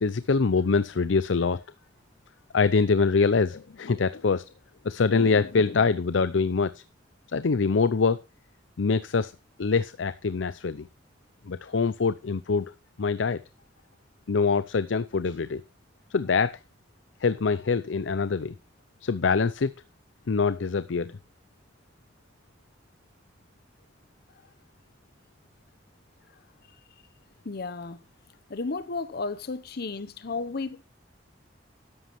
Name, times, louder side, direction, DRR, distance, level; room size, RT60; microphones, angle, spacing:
voice 1, 0.0-1.6 2.5-4.4 4.8-6.8 7.3-8.2 8.8-9.3 9.6-10.9 11.4-12.7 13.0-13.4 14.3-15.6 16.1-16.6 17.2-18.5 19.0-19.7 20.3-21.2, left 4 dB, 90° left, 0.6 m, -24 dB
voice 2, 27.4-28.0 28.5-30.8, left 3 dB, 60° left, 0.8 m, -33 dB
13.0 x 11.0 x 3.1 m
head